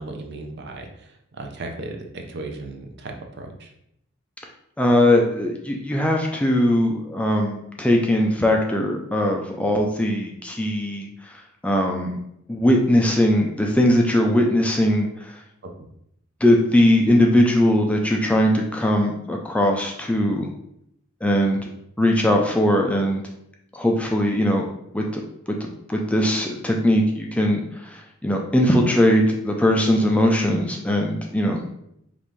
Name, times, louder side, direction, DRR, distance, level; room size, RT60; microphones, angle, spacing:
voice 1, 0.0-3.7 15.8-15.9 21.5-21.6, right 2 dB, 50° right, 3 dB, 0.6 m, -36 dB
voice 2, 4.8-11.4 11.6-12.2 12.5-15.3 16.4-20.5 21.2-21.6 22.0-23.2 23.7-24.7 24.9-25.2 25.5-25.6 25.9-31.8, left 1 dB, 5° left, 1 dB, 0.3 m, -20 dB
5.2 x 2.5 x 3.1 m, 0.76 s
head